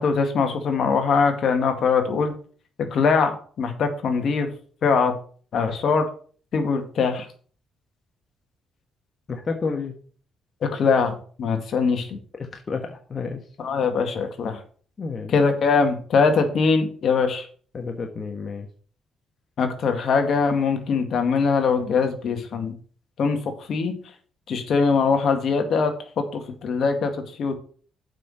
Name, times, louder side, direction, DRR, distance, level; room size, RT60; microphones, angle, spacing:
voice 1, 0.0-2.3 2.9-4.5 4.8-5.1 5.5-6.1 6.5-7.3 10.6-12.2 13.6-14.6 15.3-17.5 19.6-22.8 23.2-23.4 23.7-23.9 24.5-27.1 27.4-27.6, left 5 dB, 60° left, 5 dB, 2.1 m, -22 dB
voice 2, 9.3-9.9 12.4-13.4 15.0-15.3 17.7-18.7, left 4 dB, 40° left, 3 dB, 1.4 m, -30 dB
7.5 x 5.8 x 6.6 m, 0.44 s
cardioid pair, 90°, 0 cm